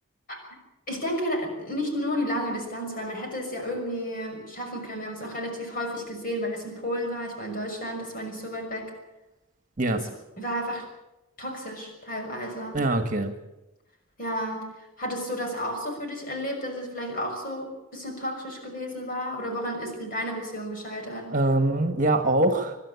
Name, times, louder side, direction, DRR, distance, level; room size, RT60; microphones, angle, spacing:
voice 1, 0.9-8.9 9.9-10.1 10.4-10.8 11.4-12.8 14.2-14.7 15.0-21.3, equal, 40° left, 2 dB, 6.1 m, -32 dB
voice 2, 12.7-13.3 21.3-22.8, right 2 dB, 35° right, 7 dB, 1.7 m, -23 dB
26.0 x 12.0 x 8.5 m, 0.99 s
head